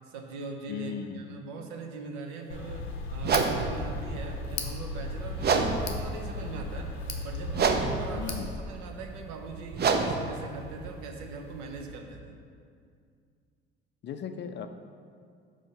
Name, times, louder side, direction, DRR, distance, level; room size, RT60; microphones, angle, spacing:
voice 1, 0.1-6.9 7.2-12.3, right 3 dB, 65° right, 3 dB, 0.8 m, -41 dB
voice 2, 0.7-1.4 8.1-8.6 14.0-14.7, left 7 dB, 35° left, 8 dB, 0.4 m, -37 dB
Tick, 2.5-8.5, left 2 dB, 90° left, 0.6 m, -36 dB
sound 1, 3.2-11.9, right 5 dB, 35° right, 0.5 m, -31 dB
5.2 x 3.6 x 5.3 m, 2.3 s
hypercardioid pair, 60°, 31 cm